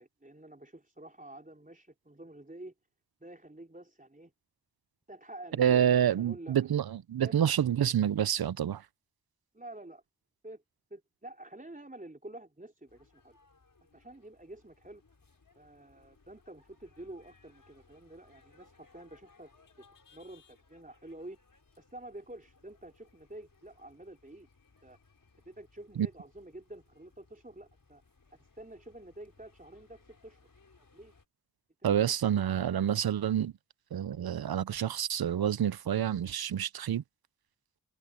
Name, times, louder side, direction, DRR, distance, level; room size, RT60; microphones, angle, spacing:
voice 1, 0.0-2.7 3.2-4.3 5.1-6.6 7.2-7.4 9.5-10.0 10.4-10.6 10.9-13.4 13.9-15.0 15.5-19.5 20.1-21.4 21.8-24.5 24.8-25.0 25.4-28.0 28.3-30.4 30.9-31.1 31.8-32.1, right 1 dB, 25° right, 4.1 m, -49 dB
voice 2, 5.6-8.8 26.0-26.1 31.8-33.5 33.9-37.0, right 9 dB, 85° right, 0.6 m, -28 dB
sound 1, 12.9-31.3, left 4 dB, 65° left, 5.1 m, -64 dB
wide cardioid pair, 45°, 36 cm